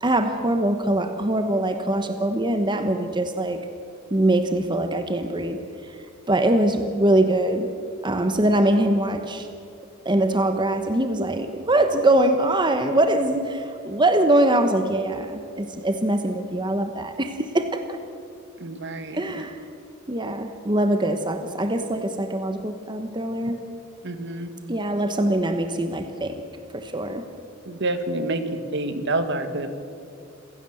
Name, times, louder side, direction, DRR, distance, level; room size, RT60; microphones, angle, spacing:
voice 1, 0.0-3.6 4.1-5.6 6.3-7.7 8.0-9.5 10.0-17.8 19.1-19.6 20.1-23.6 24.7-26.4 26.7-27.2, right 1 dB, 20° right, 7 dB, 1.1 m, -22 dB
voice 2, 18.6-19.2 24.0-24.5 27.7-28.4 28.7-29.7, right 2 dB, 60° right, 9 dB, 1.8 m, -27 dB
27.5 x 16.5 x 7.8 m, 2.6 s
head